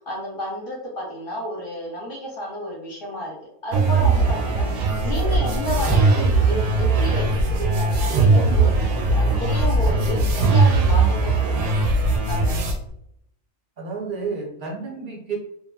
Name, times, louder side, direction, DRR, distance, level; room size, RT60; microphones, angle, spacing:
voice 1, 0.0-3.4 3.6-11.7 12.3-12.6, equal, 50° left, -3 dB, 0.7 m, -31 dB
sound 1, 3.7-12.7, right 3 dB, 85° right, 1.0 m, -19 dB
voice 2, 13.8-15.4, right 5 dB, 50° right, -1 dB, 0.6 m, -30 dB
2.8 x 2.3 x 2.2 m, 0.73 s
omnidirectional pair, 1.5 m